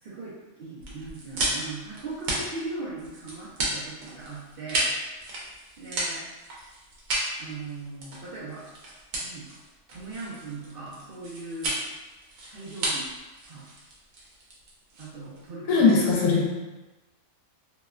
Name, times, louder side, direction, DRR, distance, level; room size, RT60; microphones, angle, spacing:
voice 1, 0.0-4.9 5.8-6.2 7.4-8.6 9.2-9.5 9.9-11.8 12.5-13.0 13.5-13.7 15.0-16.0, right 3 dB, 60° right, -8 dB, 0.6 m, -39 dB
sound 1, 0.8-15.5, right 1 dB, 85° right, 1.1 m, -33 dB
voice 2, 15.7-16.6, left 4 dB, 80° left, -3 dB, 1.1 m, -20 dB
2.8 x 2.1 x 2.3 m, 1.1 s
omnidirectional pair, 1.4 m